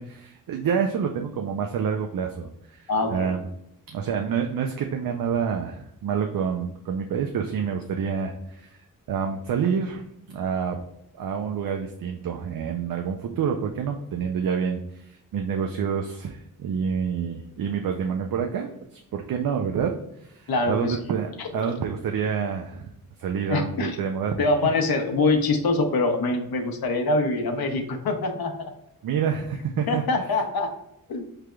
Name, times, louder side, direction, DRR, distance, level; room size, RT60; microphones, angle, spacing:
voice 1, 0.0-3.4 3.9-8.8 9.1-10.0 10.3-10.8 11.2-22.9 23.2-24.4 29.0-30.0, right 7 dB, 70° right, 3 dB, 0.5 m, -28 dB
voice 2, 2.9-3.4 20.5-21.0 21.4-21.5 23.5-24.0 24.4-28.7 29.9-30.7 31.1-31.2, left 3 dB, 90° left, 4 dB, 0.7 m, -24 dB
5.9 x 3.3 x 2.2 m, 0.80 s
wide cardioid pair, 130°, 35 cm